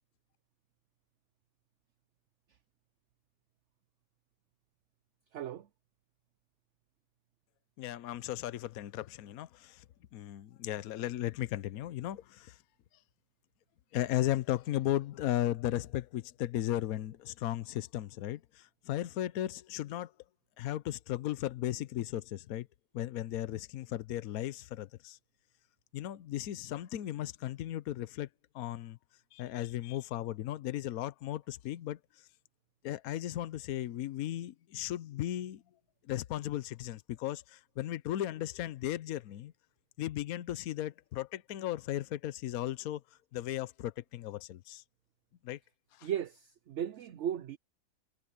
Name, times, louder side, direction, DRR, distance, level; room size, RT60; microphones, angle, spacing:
voice 1, 5.3-5.7 46.0-47.6, right 10 dB, 60° right, 0.8 m, -36 dB
voice 2, 7.8-9.8 10.1-12.6 13.9-20.1 20.6-22.7 22.9-25.2 25.9-28.3 28.5-29.0 29.3-32.0 32.8-35.6 36.1-39.5 40.0-43.0 43.3-44.8 45.4-45.6 46.0-46.1, left 13 dB, 70° left, 1.1 m, -36 dB
omnidirectional pair, 1.7 m